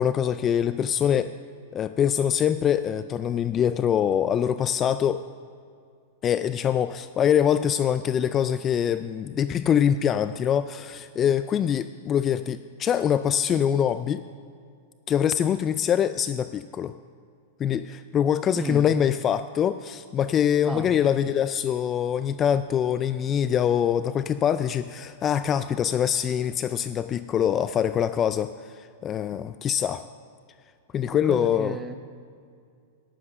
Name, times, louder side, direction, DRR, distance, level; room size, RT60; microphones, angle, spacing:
voice 1, 0.0-1.3 1.7-5.2 6.2-14.2 15.1-16.9 17.6-30.0 30.9-31.8, left 9 dB, 25° left, 12 dB, 0.3 m, -24 dB
voice 2, 18.6-18.9 20.7-21.0 31.1-32.0, right 3 dB, 10° right, 8 dB, 0.9 m, -34 dB
11.0 x 10.0 x 5.5 m, 2.3 s
hypercardioid pair, 130°, 0 cm